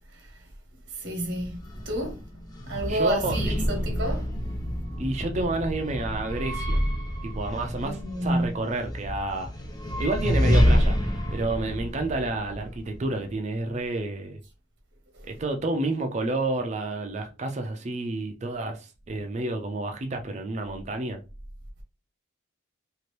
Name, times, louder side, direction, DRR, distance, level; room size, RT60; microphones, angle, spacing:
voice 1, 0.9-2.2 2.7-4.3 7.8-8.6, right 1 dB, 60° right, 1.0 m, -30 dB
sound 1, 1.2-13.3, equal, 20° left, 0.6 m, -28 dB
voice 2, 2.9-3.6 5.0-6.8 7.2-9.5 10.0-14.4 15.2-21.2, right 2 dB, 35° right, 0.4 m, -30 dB
2.8 x 2.5 x 3.1 m
head